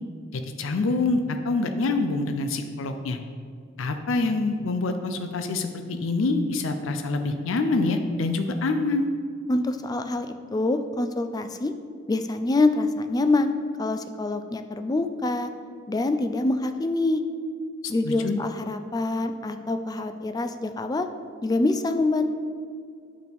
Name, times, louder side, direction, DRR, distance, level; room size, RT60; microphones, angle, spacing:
voice 1, 0.3-3.2 3.8-9.1 17.8-18.4, left 3 dB, 90° left, 7 dB, 0.5 m, -26 dB
voice 2, 9.5-11.7 12.1-13.5 13.8-15.5 15.9-17.2 17.9-21.1 21.4-22.3, left 2 dB, 20° left, 8 dB, 0.3 m, -25 dB
8.4 x 6.1 x 3.5 m, 2.2 s
head